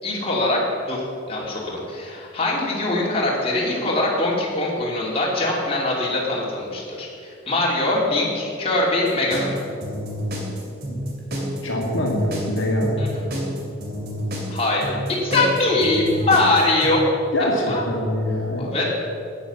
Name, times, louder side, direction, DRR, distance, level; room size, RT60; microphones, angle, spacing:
voice 1, 0.0-9.5 13.0-13.2 14.5-17.0 17.7-18.1 18.6-18.8, left 2 dB, 30° left, -4 dB, 2.9 m, -22 dB
sound 1, 9.1-16.9, equal, 50° right, 2.7 m, -29 dB
voice 2, 11.6-13.0 17.3-18.7, left 1 dB, 70° left, -2 dB, 2.1 m, -24 dB
11.0 x 9.3 x 7.1 m, 2.5 s
head